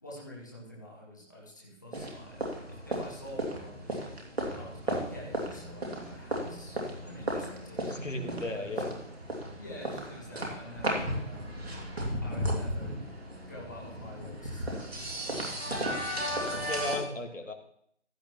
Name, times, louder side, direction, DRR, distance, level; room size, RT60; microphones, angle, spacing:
voice 1, 0.0-4.0 4.5-7.9 8.5-8.9 9.5-11.6 12.2-13.0 13.5-15.8 16.4-16.8, equal, 15° left, -5 dB, 1.1 m, -48 dB
sound 1, 1.9-17.0, equal, 55° right, 2.6 m, -35 dB
voice 2, 7.9-8.9 16.7-17.5, left 2 dB, 80° left, 5 dB, 1.8 m, -35 dB
15.0 x 8.9 x 3.0 m, 0.66 s
figure-of-eight pair, 165°, 37 cm